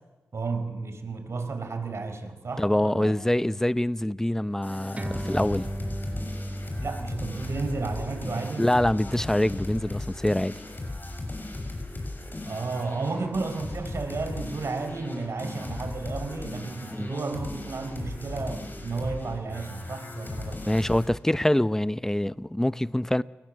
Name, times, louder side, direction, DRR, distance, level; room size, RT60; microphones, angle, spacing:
voice 1, 0.3-3.1 6.8-8.7 12.5-20.8, right 4 dB, 60° right, 4.6 m, -33 dB
voice 2, 2.6-5.7 8.6-10.5 16.9-17.1 20.7-23.2, left 1 dB, 10° left, 0.8 m, -25 dB
sound 1, 4.6-21.1, left 2 dB, 40° left, 7.5 m, -37 dB
sound 2, 5.0-11.8, right 1 dB, 30° right, 2.1 m, -38 dB
29.5 x 19.0 x 7.5 m
cardioid pair, 45°, 5 cm